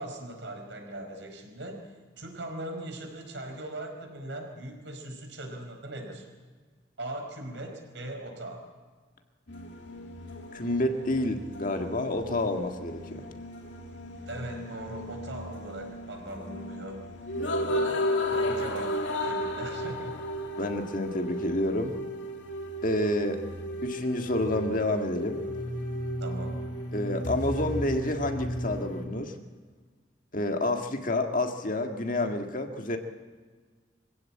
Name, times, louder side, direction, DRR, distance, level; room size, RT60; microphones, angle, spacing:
voice 1, 0.0-1.8 2.2-6.3 7.0-8.7 14.3-17.0 17.6-20.2 26.2-26.6, right 1 dB, 70° right, 3 dB, 4.8 m, -40 dB
sound 1, 9.5-29.1, equal, 75° left, 2.7 m, -34 dB
voice 2, 10.5-13.3 20.6-22.0 22.8-23.4 23.8-25.4 26.9-29.3 30.3-33.0, left 1 dB, 45° left, 4 dB, 1.8 m, -29 dB
24.5 x 16.0 x 8.7 m, 1.5 s
head